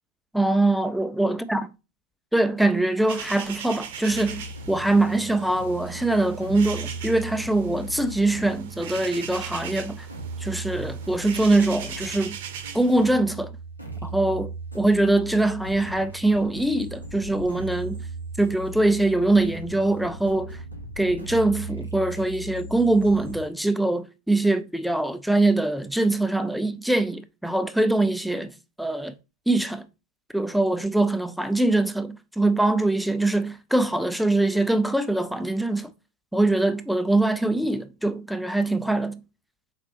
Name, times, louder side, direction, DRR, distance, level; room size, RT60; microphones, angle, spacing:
voice 1, 0.3-1.7 2.3-10.1 10.4-12.4 12.7-13.5 14.0-18.0 18.4-20.6 21.0-28.5 28.8-29.1 29.5-29.8 30.3-35.9 36.3-39.2, right 2 dB, ahead, 0.4 m, -23 dB
sound 1, 3.1-13.1, right 7 dB, 55° right, 0.7 m, -39 dB
sound 2, 4.1-23.5, right 2 dB, 90° left, 1.1 m, -38 dB
4.4 x 4.0 x 2.9 m
figure-of-eight pair, 90°, 0 cm